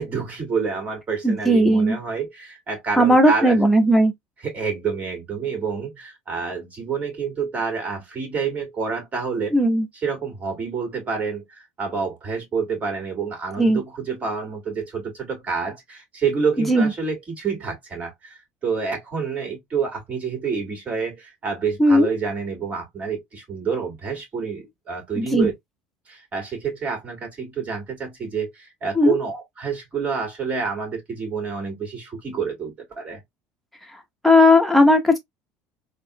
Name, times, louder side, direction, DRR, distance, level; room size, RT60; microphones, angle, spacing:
voice 1, 0.0-3.6 4.4-9.6 9.9-25.5 26.1-33.2, right 5 dB, 35° right, 2.5 m, -28 dB
voice 2, 1.2-2.0 3.0-4.1 9.5-9.9 13.6-13.8 16.6-16.9 21.8-22.1 25.2-25.5 29.0-29.2 34.2-35.2, equal, ahead, 1.2 m, -16 dB
4.0 x 2.7 x 2.3 m
supercardioid pair, 110°, 4 cm